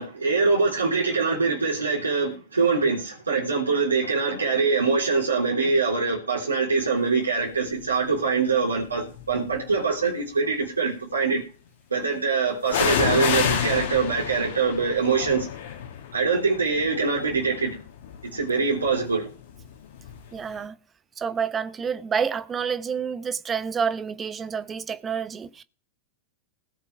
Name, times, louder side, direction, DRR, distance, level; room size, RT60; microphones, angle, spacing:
voice 1, 0.0-11.4 11.9-15.5 16.1-17.8 18.3-19.3, right 4 dB, 75° right, 3.9 m, -24 dB
sound 1, 7.7-8.1 8.8-9.8 12.7-20.3 20.6-20.7, left 8 dB, 55° left, 2.3 m, -30 dB
voice 2, 20.3-20.7 21.2-25.6, right 6 dB, 20° right, 0.9 m, -28 dB
20.5 x 7.4 x 3.5 m
figure-of-eight pair, 90°, 0 cm